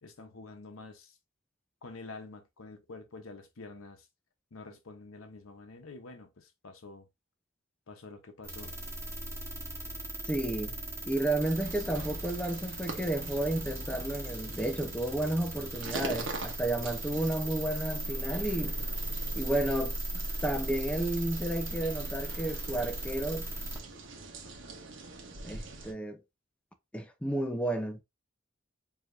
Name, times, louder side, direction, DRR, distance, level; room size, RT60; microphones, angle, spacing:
voice 1, 0.0-1.2 1.8-4.1 4.5-7.1 7.9-8.8, left 3 dB, 85° left, 0.8 m, -48 dB
sound 1, 8.4-23.8, right 1 dB, 15° right, 1.0 m, -38 dB
voice 2, 10.3-10.7 11.1-18.8 19.4-23.5 25.4-26.2 26.9-28.0, right 1 dB, 5° left, 0.6 m, -32 dB
sound 2, 11.4-25.9, right 3 dB, 65° right, 1.0 m, -44 dB
4.9 x 2.8 x 2.5 m
head